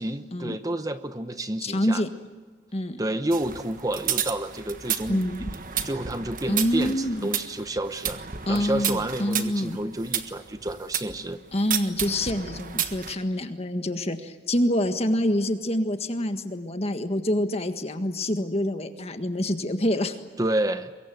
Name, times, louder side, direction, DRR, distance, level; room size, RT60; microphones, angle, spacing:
voice 1, 0.0-2.0 3.0-5.3 5.8-8.2 8.5-11.4 20.4-20.9, right 1 dB, 20° right, 10 dB, 0.9 m, -29 dB
voice 2, 1.6-2.1 2.7-3.0 5.1-5.5 5.8-5.9 6.5-7.3 8.5-9.8 11.5-20.2, left 1 dB, 35° left, 7 dB, 1.6 m, -26 dB
sound 1, 3.3-11.2 11.7-13.1, right 9 dB, 50° right, 1.5 m, -32 dB
24.0 x 22.5 x 9.3 m, 1.4 s
head